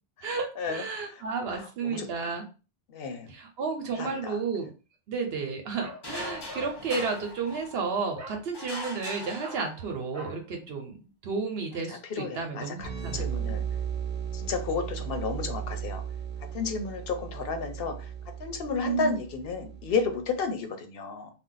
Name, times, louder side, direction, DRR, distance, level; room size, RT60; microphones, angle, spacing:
voice 1, 0.2-2.4 3.3-4.7 5.1-13.6 18.8-19.2, right 5 dB, 75° right, 3 dB, 0.9 m, -32 dB
voice 2, 2.9-3.3 4.0-4.1 12.2-13.6 14.4-16.0 16.5-17.9 18.4-21.3, left 5 dB, 70° left, 6 dB, 0.8 m, -31 dB
Bark, 5.8-7.2 8.2-8.4 8.7-9.0 9.4-9.7 10.1-10.4, equal, 30° right, 0.3 m, -43 dB
sound 1, 6.0-8.0 8.5-10.1, left 2 dB, 30° left, 0.6 m, -41 dB
sound 2, 12.8-20.3, right 8 dB, 50° right, 0.8 m, -36 dB
2.5 x 2.0 x 3.8 m, 0.34 s
omnidirectional pair, 1.0 m